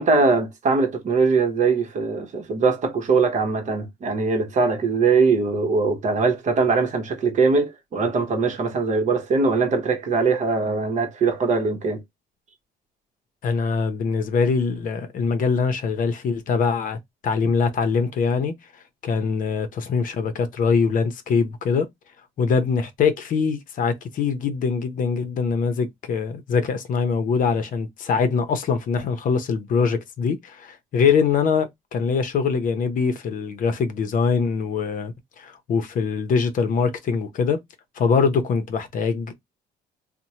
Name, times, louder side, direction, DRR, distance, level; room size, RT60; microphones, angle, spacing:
voice 1, 0.0-12.0, right 4 dB, 45° right, 0.9 m, -21 dB
voice 2, 13.4-17.0 17.2-18.5 19.0-21.9 22.4-37.6 38.0-39.3, left 5 dB, 55° left, 0.6 m, -23 dB
2.9 x 2.1 x 2.7 m
cardioid pair, 110°, 17 cm